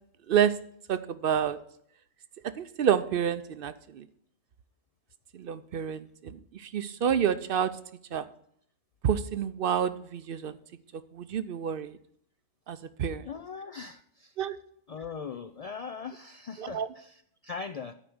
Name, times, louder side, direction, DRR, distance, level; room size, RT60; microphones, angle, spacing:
voice 1, 0.9-1.6 2.6-4.1 5.3-7.7 8.1-8.3 9.0-10.6 10.9-12.0 12.7-13.3 14.4-14.6 16.6-16.9, right 8 dB, 60° right, 13 dB, 0.7 m, -29 dB
voice 2, 13.2-14.3 14.9-17.9, left 5 dB, 60° left, 8 dB, 0.4 m, -40 dB
9.9 x 4.6 x 7.8 m, 0.65 s
omnidirectional pair, 1.1 m